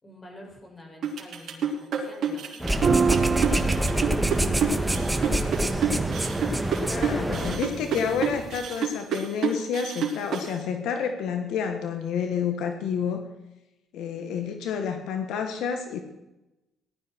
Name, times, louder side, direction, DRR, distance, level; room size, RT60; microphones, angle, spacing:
voice 1, 0.0-6.1 6.5-8.1, left 1 dB, 25° left, 0 dB, 6.6 m, -46 dB
sound 1, 1.0-10.5, right 6 dB, 65° right, 3.3 m, -28 dB
sound 2, 2.6-7.6, right 1 dB, 10° right, 1.5 m, -27 dB
sound 3, 2.8-8.6, right 5 dB, 40° right, 1.4 m, -29 dB
voice 2, 6.9-13.2 13.9-16.0, left 7 dB, 85° left, 6 dB, 1.6 m, -29 dB
18.5 x 12.5 x 4.7 m, 0.96 s
cardioid pair, 90°, 0 cm